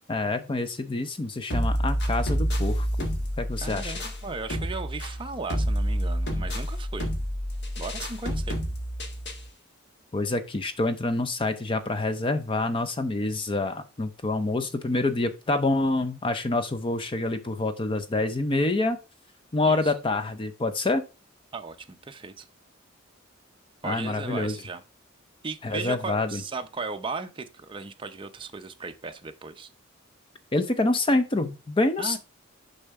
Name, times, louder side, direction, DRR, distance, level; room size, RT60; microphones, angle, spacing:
voice 1, 0.1-3.1 3.4-3.9 10.1-19.0 19.5-21.0 23.8-24.6 25.6-26.4 30.5-32.2, left 2 dB, 25° left, 0.5 m, -27 dB
sound 1, 1.5-9.5, equal, 55° left, 1.4 m, -29 dB
voice 2, 3.6-7.1 7.8-8.6 19.7-19.9 21.5-22.5 23.8-24.8 25.4-29.7 32.0-32.2, right 4 dB, 25° right, 0.6 m, -36 dB
6.7 x 5.6 x 3.5 m
head